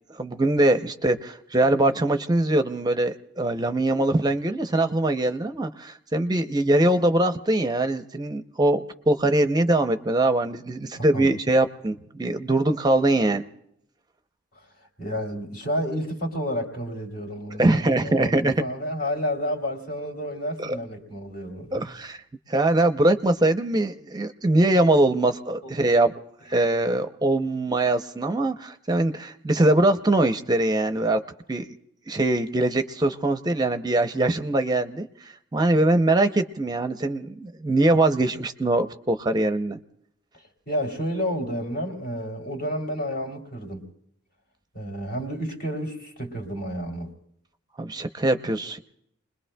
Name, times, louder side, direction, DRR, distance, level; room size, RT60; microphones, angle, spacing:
voice 1, 0.2-13.4 17.6-18.5 20.6-20.8 21.7-22.2 22.5-26.1 26.5-31.2 31.5-31.7 32.1-35.1 35.5-39.8 47.8-48.8, right 2 dB, 20° right, 8 dB, 0.6 m, -22 dB
voice 2, 15.0-22.0 25.6-25.9 40.7-43.8 44.7-47.1, equal, 50° left, 1 dB, 2.8 m, -30 dB
29.5 x 21.0 x 2.2 m, 0.76 s
head